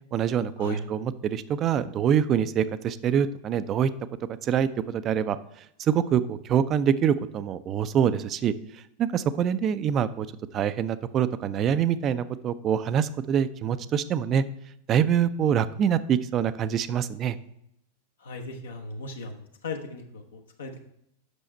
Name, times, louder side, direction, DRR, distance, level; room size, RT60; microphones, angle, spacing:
voice 1, 0.1-3.9 4.4-5.4 5.8-8.5 9.0-10.3 10.5-14.4 14.9-17.4, right 8 dB, 30° right, 14 dB, 0.4 m, -25 dB
voice 2, 18.2-20.8, left 2 dB, 65° left, 3 dB, 0.9 m, -37 dB
8.0 x 6.4 x 4.4 m, 0.76 s
figure-of-eight pair, 90°, 0 cm